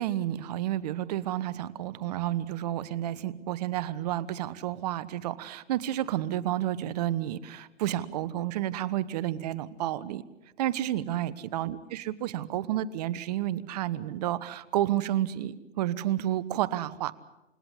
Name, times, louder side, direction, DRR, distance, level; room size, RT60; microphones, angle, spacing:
voice 1, 0.0-10.2 10.6-17.1, right 13 dB, 35° right, 18 dB, 1.1 m, -30 dB
29.0 x 17.0 x 8.2 m, 0.96 s
hypercardioid pair, 145°, 35 cm